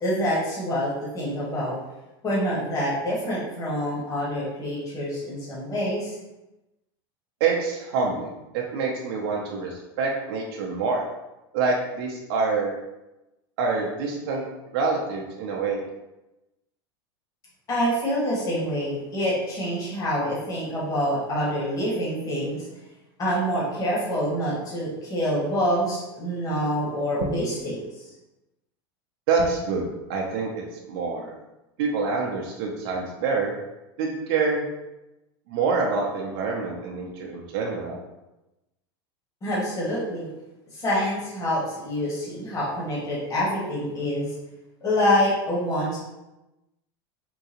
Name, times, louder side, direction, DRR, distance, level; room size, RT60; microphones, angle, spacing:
voice 1, 0.0-1.8 2.2-6.1 17.7-22.9 23.2-28.1 39.4-40.3 40.7-44.3 44.8-46.0, equal, 25° left, -7 dB, 1.3 m, -26 dB
voice 2, 7.4-11.0 11.5-12.7 13.6-14.4 14.7-15.8 29.3-30.5 30.9-31.3 31.8-33.5 34.0-34.6 35.5-38.0, right 4 dB, 65° right, -1 dB, 0.6 m, -26 dB
3.7 x 2.3 x 2.9 m, 0.98 s
supercardioid pair, 115°, 13 cm